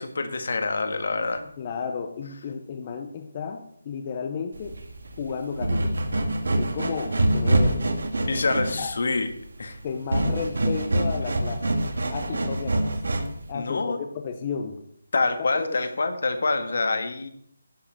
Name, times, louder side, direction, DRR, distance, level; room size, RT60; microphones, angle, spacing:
voice 1, 0.0-1.4 8.3-9.3 9.6-9.8 13.5-14.0 15.1-17.3, left 3 dB, 60° left, 8 dB, 1.6 m, -26 dB
voice 2, 1.6-4.7 5.2-6.0 6.6-7.8 8.7-8.9 9.8-11.6 12.1-13.0 13.5-14.8 15.5-15.8, left 6 dB, 25° left, 5 dB, 0.8 m, -33 dB
sound 1, 4.5-13.5, right 1 dB, 75° right, 2.0 m, -25 dB
11.5 x 5.8 x 7.5 m, 0.67 s
hypercardioid pair, 170°, 0 cm